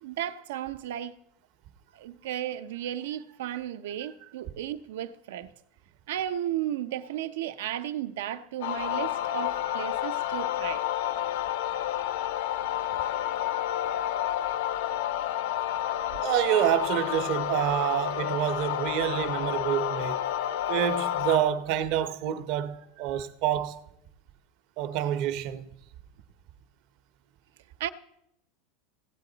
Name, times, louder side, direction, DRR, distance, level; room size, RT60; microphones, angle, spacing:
voice 1, 0.0-1.1 1.9-5.5 6.1-10.8 27.8-27.9, right 11 dB, 85° right, 0.6 m, -34 dB
sound 1, 8.6-21.4, left 12 dB, 75° left, 0.8 m, -30 dB
voice 2, 16.2-20.2 20.7-23.8 24.8-25.6, right 11 dB, 50° right, 0.7 m, -27 dB
16.5 x 8.3 x 3.9 m
supercardioid pair, 160°, 0 cm